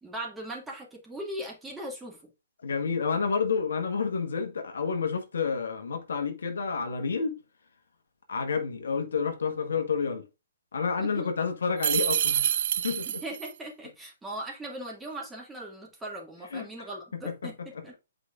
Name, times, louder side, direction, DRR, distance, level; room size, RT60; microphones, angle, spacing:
voice 1, 0.0-2.3 11.0-11.3 13.0-18.0, right 1 dB, 10° right, 2.2 m, -39 dB
voice 2, 2.6-7.4 8.3-10.3 10.7-13.2 16.5-16.7 17.2-17.8, left 5 dB, 70° left, 1.3 m, -30 dB
sound 1, 11.8-13.5, right 10 dB, 50° right, 0.4 m, -27 dB
8.3 x 5.1 x 2.5 m
hypercardioid pair, 130°, 0 cm